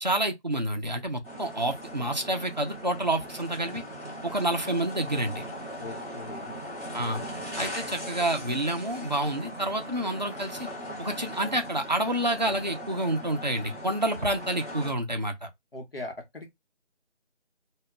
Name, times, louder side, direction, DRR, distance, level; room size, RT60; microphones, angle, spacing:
voice 1, 0.0-3.8 4.2-5.5 6.9-7.2 7.6-10.7 11.0-15.5, right 1 dB, 40° right, 0.4 m, -28 dB
sound 1, 1.2-14.9, equal, 15° left, 1.0 m, -39 dB
voice 2, 5.8-6.6 15.7-16.5, left 2 dB, 55° left, 0.9 m, -40 dB
2.2 x 2.1 x 3.6 m
figure-of-eight pair, 165°, 35 cm